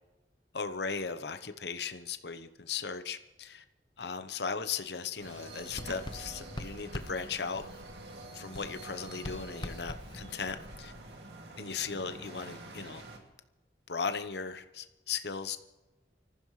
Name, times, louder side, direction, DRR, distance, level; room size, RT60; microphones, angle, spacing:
voice 1, 0.5-3.6 4.0-7.6 8.3-10.9 11.6-13.0 13.9-15.6, left 5 dB, 70° left, 9 dB, 0.9 m, -37 dB
sound 1, 5.2-13.2, right 2 dB, 70° right, 2.3 m, -47 dB
Writing, 5.6-8.2 8.5-11.2, left 1 dB, 25° left, 0.7 m, -45 dB
25.0 x 15.0 x 3.2 m, 1.1 s
head